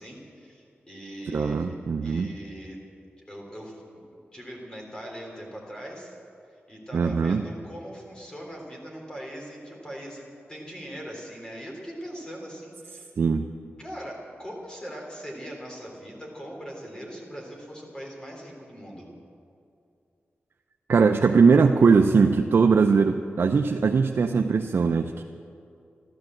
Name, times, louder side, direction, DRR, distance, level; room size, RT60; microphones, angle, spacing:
voice 1, 0.0-1.7 2.0-2.8 3.3-3.8 4.3-6.2 6.5-13.1 13.8-19.1, equal, 20° left, -1 dB, 3.6 m, -40 dB
voice 2, 1.3-2.3 6.9-7.4 13.2-13.4 20.9-25.2, right 5 dB, 60° right, 5 dB, 0.6 m, -20 dB
13.5 x 13.0 x 7.7 m, 2.5 s
wide cardioid pair, 95°, 4 cm